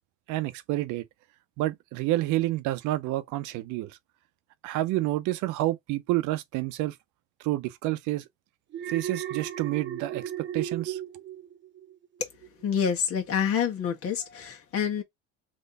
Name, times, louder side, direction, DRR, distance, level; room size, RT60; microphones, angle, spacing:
voice 1, 0.3-1.1 1.6-4.0 4.6-7.0 7.4-8.2 8.9-11.0, right 17 dB, 75° right, 0.7 m, -29 dB
Alarm, 8.7-12.0 12.4-12.8, right 10 dB, 40° right, 0.9 m, -36 dB
voice 2, 12.6-15.0, left 7 dB, 45° left, 1.7 m, -27 dB
3.3 x 3.1 x 4.1 m
cardioid pair, 120°, 31 cm